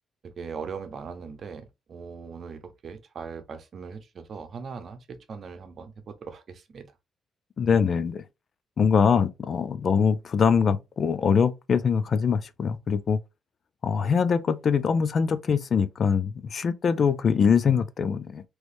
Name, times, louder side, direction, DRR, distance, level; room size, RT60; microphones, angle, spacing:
voice 1, 0.2-6.9, right 5 dB, 50° right, 0.7 m, -40 dB
voice 2, 7.6-8.2 8.8-13.2 13.8-18.4, left 6 dB, 50° left, 0.4 m, -23 dB
3.2 x 3.1 x 2.6 m
cardioid pair, 95°, 0 cm